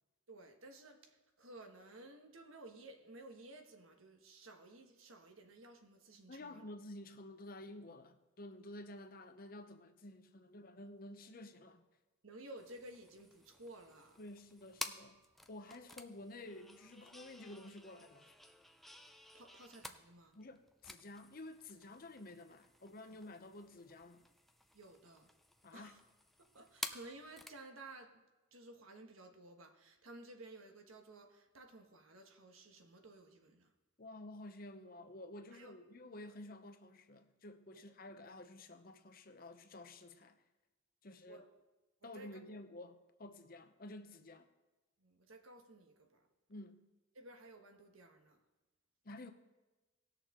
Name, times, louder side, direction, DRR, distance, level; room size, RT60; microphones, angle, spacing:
voice 1, 0.3-6.6 12.2-14.2 19.3-20.4 24.7-25.3 25.7-26.0 26.5-28.2 28.5-33.7 35.5-35.7 41.3-41.4 42.0-42.3 45.0-46.3 47.1-48.4, right 2 dB, 85° right, 1.4 m, -55 dB
voice 2, 6.3-11.8 14.2-15.2 15.5-18.3 20.3-24.3 25.6-26.0 34.0-40.4 41.0-41.5 42.0-44.5 46.5-46.8 49.0-49.3, left 1 dB, 45° left, 0.8 m, -51 dB
sound 1, 12.6-27.6, left 1 dB, ahead, 0.4 m, -52 dB
19.0 x 6.6 x 3.7 m
head